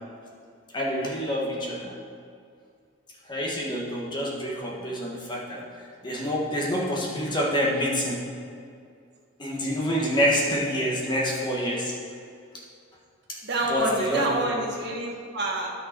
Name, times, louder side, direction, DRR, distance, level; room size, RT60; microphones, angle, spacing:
voice 1, 0.7-1.9 3.3-5.6 6.0-8.2 9.4-11.9 13.3-13.4 13.7-14.2, equal, 20° left, -3 dB, 1.4 m, -27 dB
voice 2, 13.4-15.7, right 2 dB, 50° right, -2 dB, 1.5 m, -27 dB
10.0 x 6.6 x 4.5 m, 2.3 s
head